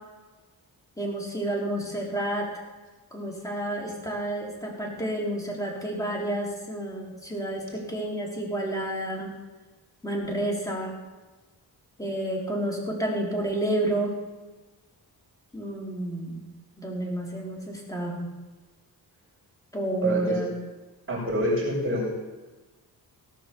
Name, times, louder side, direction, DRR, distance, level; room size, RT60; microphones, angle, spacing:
voice 1, 1.0-2.5 3.1-9.3 10.0-11.0 12.0-14.1 15.5-16.4 16.8-18.3 19.7-20.5, right 1 dB, 10° left, -3 dB, 3.8 m, -30 dB
voice 2, 20.0-20.4 21.1-22.1, equal, 35° right, -5 dB, 5.7 m, -27 dB
17.0 x 7.1 x 7.0 m, 1.2 s
wide cardioid pair, 105°, 38 cm